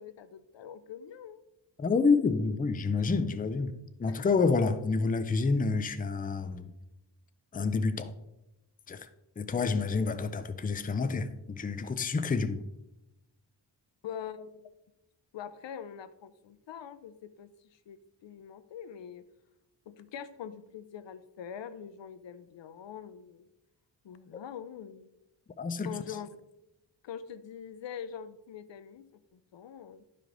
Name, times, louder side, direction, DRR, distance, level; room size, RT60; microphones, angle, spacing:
voice 1, 0.0-1.4 4.1-4.3 14.0-14.7 15.3-19.3 19.9-23.5 24.0-25.1 25.8-26.4 27.0-30.0, left 8 dB, 75° left, 0.6 m, -44 dB
voice 2, 1.8-3.7 4.0-6.7 7.5-8.1 8.9-9.1 9.4-12.6 25.6-25.9, left 4 dB, 20° left, 0.4 m, -28 dB
11.0 x 5.0 x 3.8 m
wide cardioid pair, 115°, 44 cm